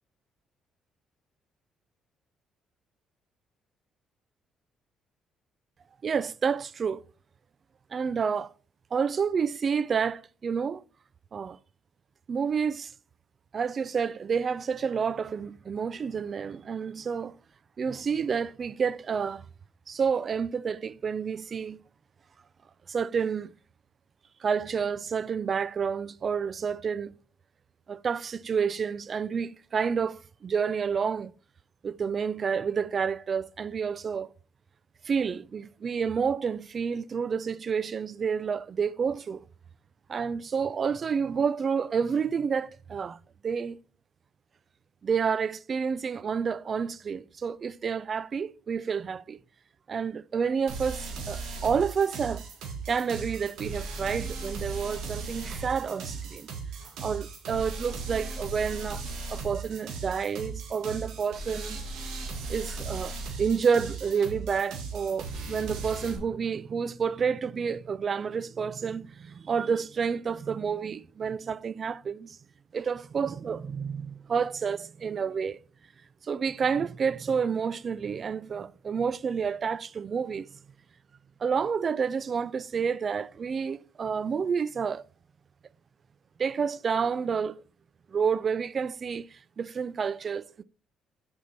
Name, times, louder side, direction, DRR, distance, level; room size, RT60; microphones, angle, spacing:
voice 1, 6.0-7.0 7.9-8.5 8.9-10.8 11.3-11.6 12.3-12.9 13.5-17.3 17.8-19.4 19.9-21.8 22.9-23.5 24.4-27.1 27.9-31.3 31.8-34.3 35.0-39.4 40.1-43.2 43.4-43.8 45.0-49.4 49.9-52.4 52.9-56.5 57.0-59.0 59.3-61.8 62.5-72.4 72.7-75.6 76.2-80.5 81.4-85.1 86.4-87.6 88.1-90.6, right 6 dB, 40° right, 0.3 m, -29 dB
sound 1, 50.7-66.2, right 4 dB, 80° right, 1.7 m, -37 dB
6.4 x 5.4 x 4.2 m
cardioid pair, 100°, 0 cm